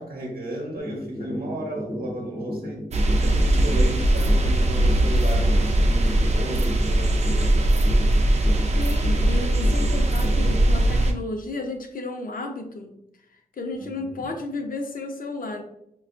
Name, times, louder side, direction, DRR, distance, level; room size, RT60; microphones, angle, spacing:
voice 1, 0.0-2.8 3.2-7.7 13.7-14.3, right 1 dB, 75° right, -1 dB, 0.8 m, -34 dB
sound 1, 0.8-10.8, left 1 dB, 15° left, 0.4 m, -33 dB
sound 2, 2.9-11.1, right 1 dB, 45° right, 0.4 m, -20 dB
voice 2, 8.7-12.9 13.5-15.6, left 2 dB, 65° left, 4 dB, 0.6 m, -32 dB
5.1 x 2.3 x 2.4 m, 0.77 s
wide cardioid pair, 110°, 15 cm